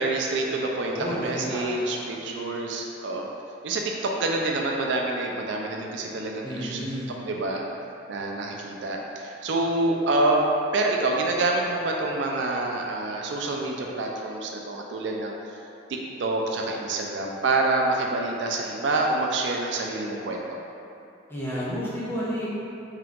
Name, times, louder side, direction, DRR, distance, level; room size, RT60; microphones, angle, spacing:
voice 1, 0.0-3.3 3.6-6.8 7.3-7.6 8.1-15.3 15.9-20.6, right 2 dB, 65° right, 0 dB, 0.4 m, -27 dB
voice 2, 0.8-2.0 2.2-2.5 6.4-7.1 21.3-22.5, equal, 10° left, -9 dB, 0.7 m, -31 dB
3.6 x 2.8 x 3.5 m, 2.7 s
head